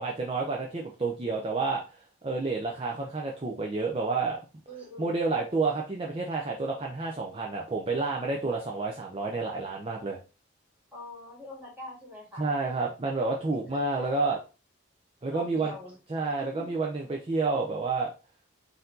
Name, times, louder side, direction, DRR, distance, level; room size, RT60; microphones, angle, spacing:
voice 1, 0.0-1.8 2.2-4.4 5.0-10.2 12.4-14.4 15.2-15.7 16.1-18.1, right 3 dB, 25° right, 0 dB, 0.4 m, -29 dB
voice 2, 4.7-5.1 10.9-12.4 13.4-14.4 15.3-15.9 16.4-16.7, left 1 dB, 10° right, -3 dB, 1.7 m, -44 dB
4.4 x 2.7 x 3.7 m, 0.33 s
head